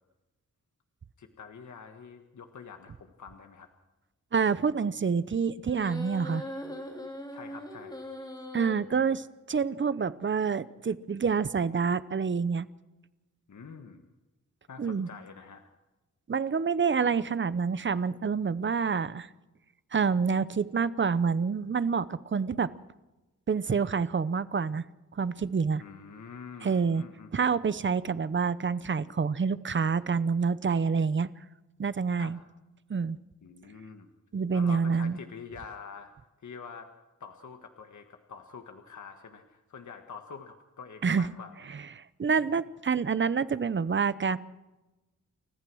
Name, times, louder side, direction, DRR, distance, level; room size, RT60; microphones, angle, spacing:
voice 1, 1.2-3.7 7.3-8.1 8.7-9.2 13.5-14.1 14.7-15.7 25.8-27.3 32.2-32.3 33.4-34.1 34.5-36.1 36.4-36.9 37.2-41.7, left 6 dB, 65° left, 5 dB, 1.6 m, -46 dB
voice 2, 4.3-6.4 8.5-9.2 9.5-12.7 14.8-15.1 16.3-19.3 19.9-22.7 23.5-24.8 25.2-25.8 26.6-27.0 27.3-31.3 31.8-32.4 32.9-33.2 34.3-35.2 41.0-41.3 42.0-44.4, right 5 dB, 40° right, 16 dB, 0.8 m, -27 dB
sound 1, 5.7-8.7, left 1 dB, 15° left, 3.9 m, -40 dB
29.0 x 15.0 x 6.3 m, 1.1 s
wide cardioid pair, 120°, 31 cm